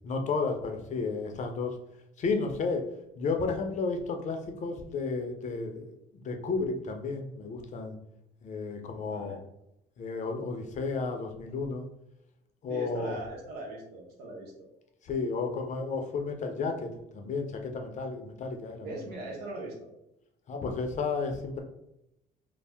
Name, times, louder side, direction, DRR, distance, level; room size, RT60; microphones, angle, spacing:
voice 1, 0.0-1.8 2.2-2.8 3.2-8.0 8.4-9.4 10.0-11.9 12.6-13.2 15.0-18.9 20.5-21.6, left 4 dB, 45° left, 4 dB, 0.5 m, -32 dB
voice 2, 8.9-9.4 12.7-14.7 18.8-19.9, right 2 dB, 75° right, -2 dB, 0.8 m, -40 dB
2.6 x 2.0 x 3.4 m, 0.82 s
cardioid pair, 110°, 17 cm